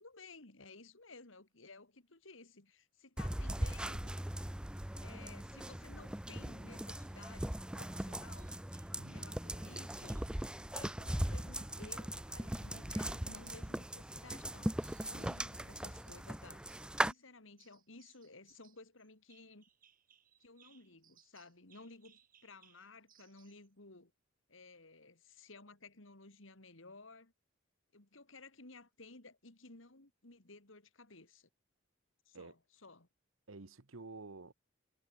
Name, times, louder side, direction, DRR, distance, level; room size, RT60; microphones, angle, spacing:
voice 1, 0.0-4.2 5.0-8.5 9.0-10.3 10.7-16.6 17.0-19.7 20.4-24.1 24.5-27.3 27.9-31.5 32.3-33.1, left 3 dB, 70° left, 2.9 m, -56 dB
sound 1, 3.2-17.1, right 1 dB, 5° right, 0.5 m, -39 dB
sound 2, 8.7-9.1 10.0-10.4 11.0-12.3 12.6-14.5 14.8-16.1 16.7-17.3 17.6-23.7, right 9 dB, 45° right, 6.4 m, -69 dB
voice 2, 9.0-9.3 32.3-32.5 33.5-34.5, right 3 dB, 80° right, 1.2 m, -50 dB
head